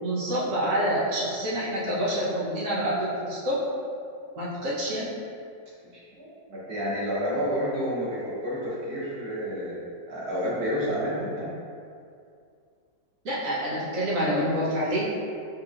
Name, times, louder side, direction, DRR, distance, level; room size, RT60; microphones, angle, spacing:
voice 1, 0.0-3.6 4.4-5.1 13.2-15.1, equal, 55° right, -7 dB, 1.3 m, -27 dB
voice 2, 6.2-11.6, equal, 90° right, -8 dB, 1.8 m, -30 dB
5.7 x 2.9 x 2.5 m, 2.4 s
omnidirectional pair, 1.8 m